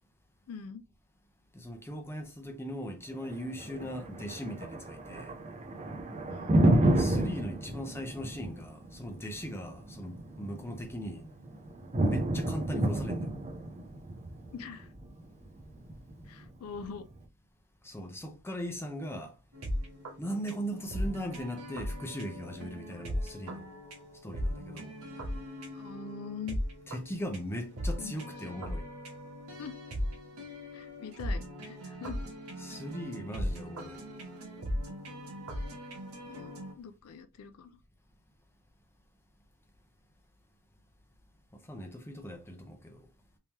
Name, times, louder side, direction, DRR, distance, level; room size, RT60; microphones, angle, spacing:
voice 1, 0.5-0.8 6.3-6.6 14.5-14.9 16.3-17.1 22.9-23.1 25.7-26.6 28.0-28.1 29.6-29.8 30.7-32.2 36.2-37.7, left 6 dB, 75° left, 0.4 m, -43 dB
voice 2, 1.5-5.3 6.9-11.3 12.0-13.3 17.8-19.3 20.2-23.7 24.2-24.9 26.9-28.8 32.6-34.0 41.7-43.1, equal, 10° left, 0.6 m, -39 dB
Thunder, 3.1-17.1, right 1 dB, 30° right, 0.6 m, -31 dB
sound 1, 19.5-36.7, equal, 80° right, 1.2 m, -38 dB
3.6 x 2.8 x 2.9 m
head